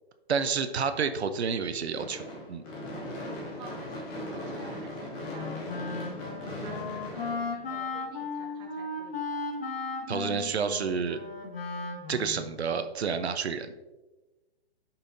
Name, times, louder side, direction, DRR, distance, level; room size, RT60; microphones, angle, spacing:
voice 1, 0.3-2.6 10.1-11.2 12.1-13.7, right 6 dB, 90° right, 9 dB, 0.8 m, -29 dB
Gunshot gunfire / Fireworks, 2.0-8.2, left 1 dB, 5° left, 0.4 m, -39 dB
voice 2, 3.6-9.4, right 3 dB, 15° right, -1 dB, 1.1 m, -50 dB
Wind instrument woodwind instrument, 5.2-12.5, left 4 dB, 70° left, 1.7 m, -36 dB
10.5 x 5.6 x 2.7 m, 1.1 s
hypercardioid pair, 150°, 31 cm